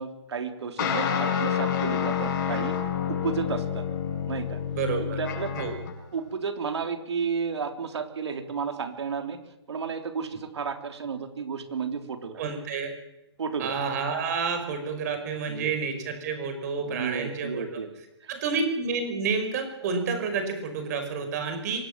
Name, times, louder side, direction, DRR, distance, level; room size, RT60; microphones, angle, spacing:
voice 1, 0.0-2.8 3.1-3.8 4.2-4.6 5.2-5.6 6.1-9.4 9.7-12.4 13.4-13.8 15.5-15.7 16.8-17.9 18.2-18.3, right 6 dB, 75° right, 6 dB, 3.6 m, -32 dB
sound 1, 0.8-5.9, left 8 dB, 45° left, 7.1 m, -28 dB
voice 2, 4.8-5.2 5.6-5.7 12.4-12.9 13.6-17.6 18.3-21.9, right 5 dB, 35° right, 7 dB, 5.6 m, -29 dB
24.5 x 18.5 x 7.6 m, 0.88 s
hypercardioid pair, 160°, 14 cm